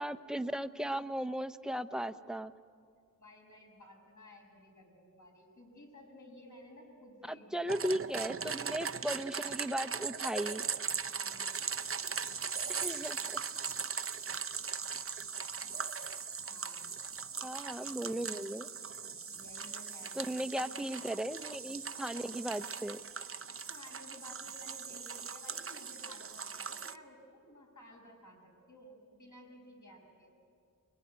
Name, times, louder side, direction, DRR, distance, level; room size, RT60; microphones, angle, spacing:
voice 1, 0.0-2.5 7.3-10.6 12.7-13.4 17.4-18.7 20.2-23.0, right 1 dB, ahead, 10 dB, 0.7 m, -36 dB
voice 2, 3.2-7.9 11.1-11.7 16.3-16.9 19.3-20.8 23.7-30.3, left 1 dB, 55° left, 0 dB, 6.2 m, -55 dB
sound 1, 7.7-27.0, right 6 dB, 40° right, 0.6 m, -39 dB
22.5 x 22.0 x 9.6 m, 2.2 s
wide cardioid pair, 85°, 35 cm